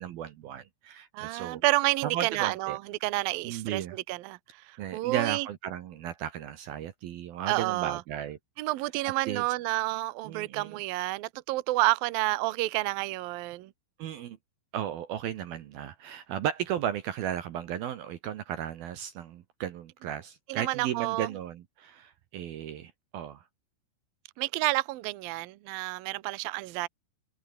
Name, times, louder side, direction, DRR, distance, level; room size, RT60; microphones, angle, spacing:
voice 1, 0.0-1.6 2.0-2.8 3.4-4.0 4.8-8.4 9.3-9.4 10.2-10.8 14.0-14.4 14.7-23.4, right 10 dB, 70° right, 2.5 m, -35 dB
voice 2, 1.1-5.5 7.5-8.0 8.6-13.7 20.5-21.3 24.4-26.9, right 19 dB, 90° right, 2.0 m, -30 dB
omnidirectional pair, 5.8 m